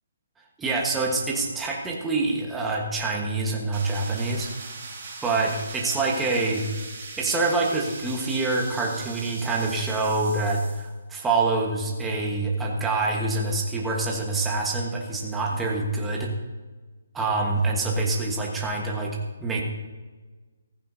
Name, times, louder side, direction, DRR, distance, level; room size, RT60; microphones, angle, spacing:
voice 1, 0.6-4.5 5.2-6.7 7.2-16.3 17.1-19.6, right 3 dB, 5° right, -2 dB, 1.4 m, -26 dB
sound 1, 3.7-10.9, right 4 dB, 30° right, 4.4 m, -40 dB
15.0 x 15.0 x 2.8 m, 1.3 s
hypercardioid pair, 165°, 0 cm